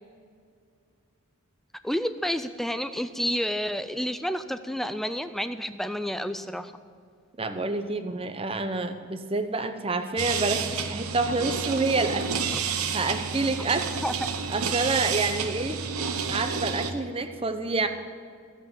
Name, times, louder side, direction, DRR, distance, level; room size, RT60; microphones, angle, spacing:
voice 1, 1.8-6.7 12.5-12.6 14.0-14.2, equal, ahead, 11 dB, 0.4 m, -30 dB
voice 2, 7.4-12.3 12.9-13.9 14.5-15.8 16.3-17.9, right 3 dB, 25° right, 8 dB, 0.8 m, -28 dB
sound 1, 10.2-16.9, right 6 dB, 85° right, 1.0 m, -30 dB
15.5 x 8.2 x 7.2 m, 2.3 s
head